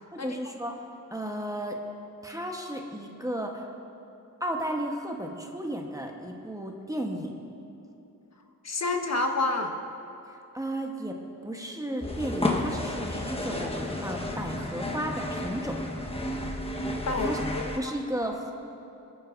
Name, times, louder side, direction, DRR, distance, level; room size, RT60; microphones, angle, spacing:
voice 1, 0.1-0.8 1.1-1.8 2.2-3.7 4.4-7.3 10.5-15.8 17.2-17.4 17.7-18.5, right 1 dB, 10° right, 1 dB, 1.1 m, -34 dB
voice 2, 8.6-9.7 17.1-17.9, left 2 dB, 50° left, 3 dB, 1.4 m, -29 dB
sound 1, 12.0-17.8, left 1 dB, 15° left, 1.3 m, -31 dB
28.0 x 9.6 x 2.6 m, 2.7 s
cardioid pair, 80°, 35 cm